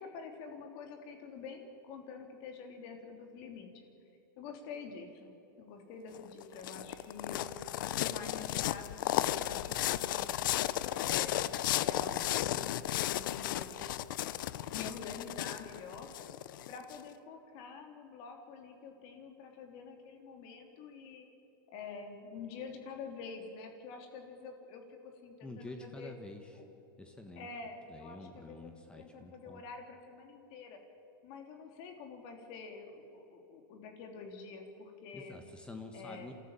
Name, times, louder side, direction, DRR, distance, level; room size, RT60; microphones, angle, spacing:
voice 1, 0.0-3.9 4.4-10.3 10.9-13.8 14.7-16.1 16.7-21.3 21.7-26.1 26.5-26.7 27.4-28.7 29.0-30.8 31.2-35.4 35.9-36.3, left 5 dB, 45° left, 4 dB, 3.4 m, -47 dB
sound 1, 6.1-17.0, left 13 dB, 65° left, 0.8 m, -34 dB
voice 2, 25.4-26.6 27.0-27.5 27.9-29.6 35.1-36.3, left 2 dB, 10° left, 5 dB, 1.4 m, -48 dB
28.0 x 14.0 x 9.0 m, 3.0 s
supercardioid pair, 145°, 12 cm